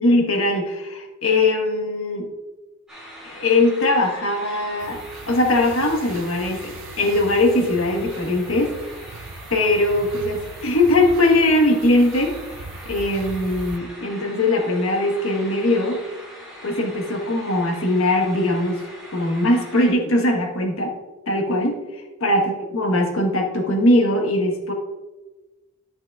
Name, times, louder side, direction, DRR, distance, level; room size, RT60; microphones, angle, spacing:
voice 1, 0.0-2.3 3.2-5.0 5.3-8.7 9.5-12.3 12.8-16.0 16.6-18.8 19.1-20.9 21.3-21.7 22.2-24.7, left 1 dB, 80° left, 1 dB, 1.3 m, -20 dB
sound 1, 2.9-19.9, equal, 5° right, 2.3 m, -42 dB
sound 2, 4.8-13.8, right 4 dB, 70° right, 0.5 m, -40 dB
11.5 x 5.8 x 2.4 m, 1.1 s
head